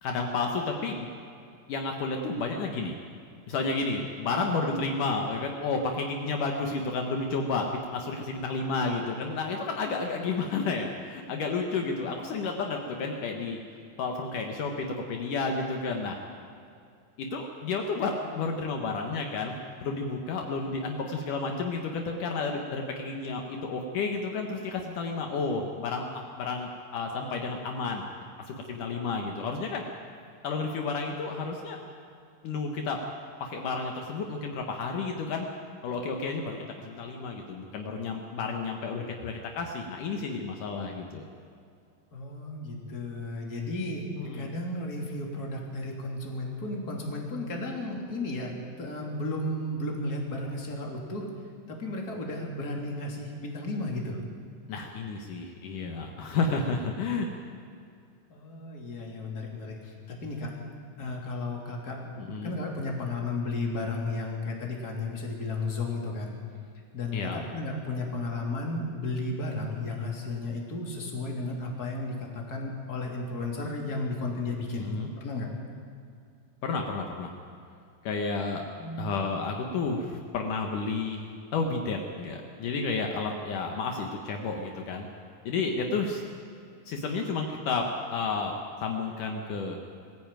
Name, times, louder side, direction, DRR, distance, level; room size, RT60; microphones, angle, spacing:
voice 1, 0.0-1.1 1.7-2.9 3.5-13.6 14.0-16.2 17.2-19.6 19.8-26.1 26.4-28.1 28.5-29.8 30.4-31.8 32.4-33.0 33.4-35.5 35.8-41.2 44.2-44.5 54.7-57.3 62.2-62.6 67.1-67.4 74.8-75.1 76.6-77.3 78.0-78.6 79.0-85.1 85.5-86.2 86.9-88.5 88.8-89.8, left 4 dB, 70° left, 2 dB, 2.8 m, -31 dB
voice 2, 42.1-44.1 44.3-51.3 51.7-54.2 58.3-60.5 61.0-62.0 62.4-66.4 66.9-74.9 75.2-75.5 78.8-79.1, left 2 dB, 30° left, -1 dB, 3.3 m, -34 dB
22.0 x 15.5 x 9.1 m, 2.4 s
omnidirectional pair, 4.0 m